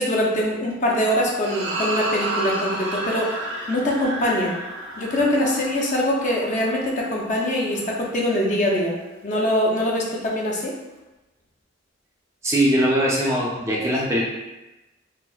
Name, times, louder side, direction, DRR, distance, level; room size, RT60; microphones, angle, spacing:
voice 1, 0.0-3.4 3.7-4.5 5.0-9.0 9.2-10.7, left 1 dB, 40° left, -3 dB, 0.6 m, -23 dB
sound 1, 1.4-8.0, right 1 dB, 90° right, 0.6 m, -31 dB
voice 2, 12.4-14.2, equal, 15° right, -4 dB, 0.4 m, -21 dB
4.0 x 2.0 x 2.3 m, 1.0 s
head